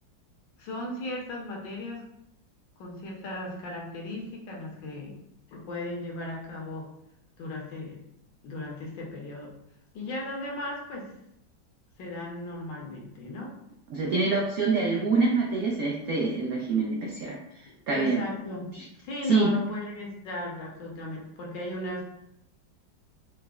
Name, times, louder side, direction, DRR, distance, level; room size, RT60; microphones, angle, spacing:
voice 1, 0.6-2.0 2.8-5.1 5.5-6.9 7.4-8.0 8.4-9.5 9.9-11.1 12.0-13.5 17.6-18.7 19.0-22.1, left 1 dB, 75° left, -2 dB, 1.5 m, -36 dB
voice 2, 13.9-17.4 17.9-18.2 18.7-18.8 19.3-19.5, right 4 dB, 85° right, -2 dB, 0.8 m, -25 dB
4.8 x 2.0 x 2.4 m, 0.78 s
omnidirectional pair, 2.1 m